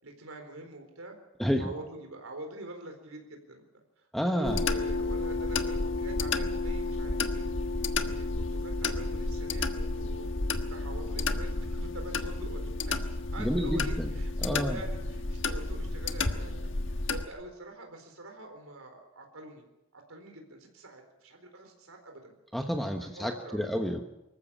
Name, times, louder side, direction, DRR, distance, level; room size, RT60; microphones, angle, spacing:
voice 1, 0.0-1.2 1.6-3.6 4.0-4.1 4.4-7.5 7.8-10.3 10.7-13.0 13.3-16.7 17.1-19.6 19.9-22.3 23.0-23.7, right 2 dB, 90° right, 4 dB, 4.2 m, -45 dB
voice 2, 1.4-1.7 4.1-4.6 13.4-14.1 14.4-14.8 22.5-24.0, equal, ahead, 3 dB, 1.1 m, -30 dB
sound 1, 4.4-17.2, left 3 dB, 65° left, 1.4 m, -31 dB
25.0 x 14.5 x 8.7 m, 0.95 s
head